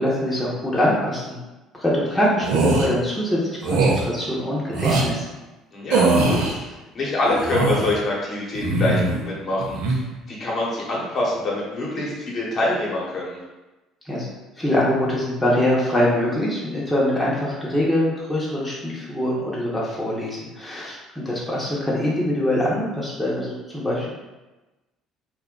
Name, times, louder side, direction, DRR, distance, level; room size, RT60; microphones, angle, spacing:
voice 1, 0.0-1.4 1.8-5.3 14.0-14.3 14.6-24.1, left 1 dB, 10° left, -6 dB, 0.8 m, -23 dB
Strong Man Surprised, 2.4-2.9 3.6-4.0 4.7-5.1 5.9-6.5 7.2-7.9 8.5-9.2 9.6-10.0, right 3 dB, 75° right, 0.5 m, -21 dB
voice 2, 5.7-10.0 10.3-13.4, left 2 dB, 50° left, -5 dB, 1.0 m, -25 dB
2.3 x 2.1 x 3.7 m, 1.1 s
hypercardioid pair, 65°, 0 cm